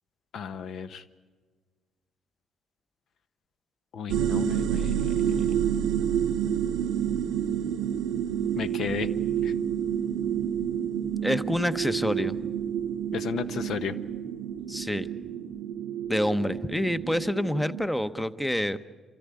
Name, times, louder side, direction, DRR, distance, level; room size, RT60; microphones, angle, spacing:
voice 1, 0.3-1.0 3.9-5.7 8.6-9.1 9.4-9.5 13.1-13.9, left 6 dB, 70° left, 12 dB, 1.0 m, -34 dB
sound 1, 4.1-17.8, right 9 dB, 85° right, 0.7 m, -29 dB
voice 2, 11.2-12.4 14.7-15.1 16.1-18.8, left 1 dB, 5° left, 13 dB, 0.8 m, -27 dB
26.5 x 13.5 x 9.7 m, 1.4 s
cardioid pair, 90°, 0 cm